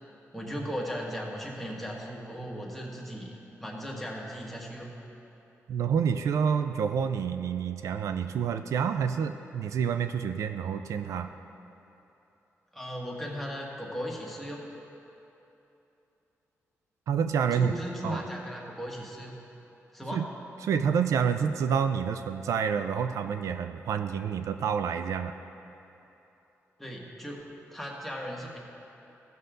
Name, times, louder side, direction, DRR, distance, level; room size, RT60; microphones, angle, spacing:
voice 1, 0.3-3.3 3.6-4.9 12.7-14.6 17.5-19.3 19.9-20.2 26.8-27.4 27.7-28.6, equal, 5° left, -3 dB, 1.8 m, -37 dB
voice 2, 5.7-11.3 17.1-17.7 18.0-18.2 20.1-20.3 20.6-25.3, right 7 dB, 85° right, 8 dB, 0.4 m, -28 dB
15.0 x 6.6 x 3.8 m, 3.0 s
cardioid pair, 75°, 5 cm